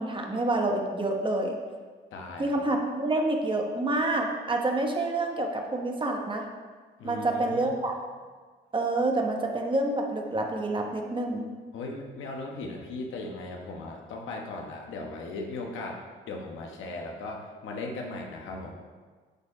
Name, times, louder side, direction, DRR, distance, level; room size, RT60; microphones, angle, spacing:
voice 1, 0.0-1.6 2.4-6.5 7.0-7.9 8.7-11.5, right 2 dB, 25° right, 2 dB, 1.2 m, -28 dB
voice 2, 2.1-2.6 7.0-7.7 11.7-16.0 16.3-18.7, left 2 dB, 80° left, 0 dB, 1.3 m, -37 dB
10.5 x 4.5 x 4.9 m, 1.5 s
cardioid pair, 90°, 20 cm